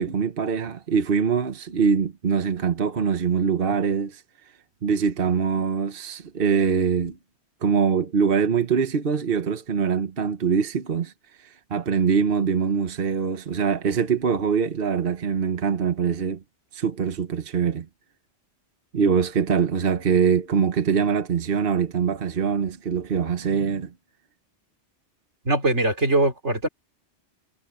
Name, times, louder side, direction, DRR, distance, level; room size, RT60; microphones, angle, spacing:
voice 1, 0.0-4.2 4.8-7.2 7.6-11.1 11.4-16.4 16.7-17.9 18.9-23.9, right 6 dB, 55° right, 1.3 m, -23 dB
voice 2, 25.4-26.7, right 2 dB, 85° right, 4.1 m, -21 dB
omnidirectional pair, 1.2 m